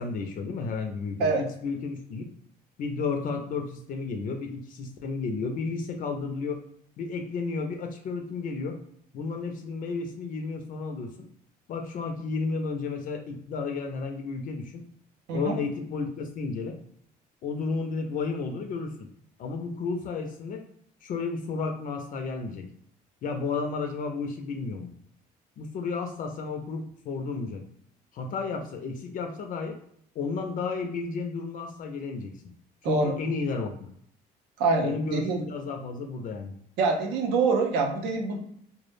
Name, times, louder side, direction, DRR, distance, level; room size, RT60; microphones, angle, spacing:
voice 1, 0.0-2.3 2.8-6.6 7.0-8.8 9.1-11.3 11.7-14.8 15.3-16.8 17.4-19.1 19.4-20.7 21.0-22.7 23.2-24.9 25.6-27.6 28.1-29.8 30.2-32.4 32.8-33.9 34.8-36.6, left 4 dB, 55° left, 4 dB, 0.4 m, -32 dB
voice 2, 34.6-35.4 36.8-38.4, right 3 dB, 85° right, 3 dB, 0.6 m, -25 dB
2.2 x 2.0 x 3.1 m, 0.69 s
cardioid pair, 110°, 17 cm